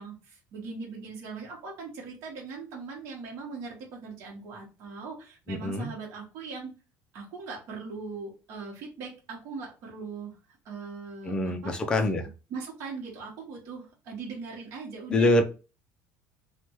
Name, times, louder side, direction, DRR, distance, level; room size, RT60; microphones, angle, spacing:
voice 1, 0.0-6.7 7.1-10.3 10.6-11.8 12.5-15.4, right 4 dB, 55° right, -2 dB, 1.0 m, -40 dB
voice 2, 5.5-5.9 11.2-12.3 15.1-15.4, left 1 dB, 15° left, 5 dB, 0.4 m, -25 dB
3.3 x 2.2 x 2.9 m, 0.32 s
cardioid pair, 170°, 6 cm